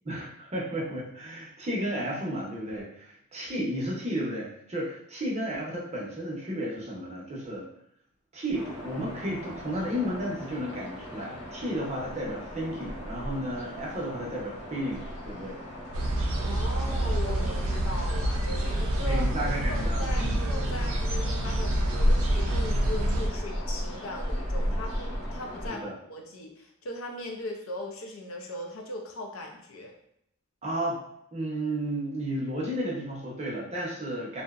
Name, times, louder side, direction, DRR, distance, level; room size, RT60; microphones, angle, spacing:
voice 1, 0.0-7.7 8.3-15.6 19.0-20.4 25.7-25.9 30.6-31.0 31.3-34.4, equal, 30° right, -3 dB, 0.6 m, -33 dB
sound 1, 8.5-25.7, equal, 55° left, 0.8 m, -38 dB
sound 2, 15.9-23.3, right 1 dB, 85° right, 0.4 m, -27 dB
voice 2, 16.4-19.3 19.7-29.9, left 1 dB, 80° left, 2 dB, 0.5 m, -39 dB
2.6 x 2.0 x 2.3 m, 0.74 s
head